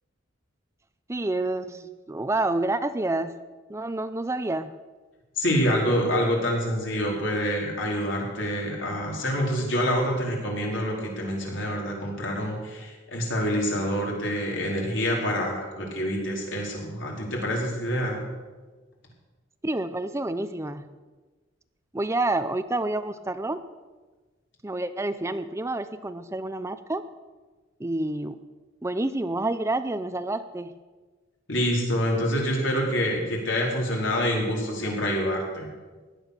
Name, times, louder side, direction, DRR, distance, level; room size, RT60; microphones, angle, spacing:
voice 1, 1.1-3.3 3.7-4.7 19.6-20.8 21.9-23.6 24.6-27.0 27.8-28.4 28.8-30.7, right 2 dB, 15° right, 11 dB, 0.5 m, -28 dB
voice 2, 5.4-18.3 31.5-35.7, equal, 70° left, -1 dB, 4.4 m, -26 dB
16.5 x 11.0 x 6.8 m, 1.3 s
head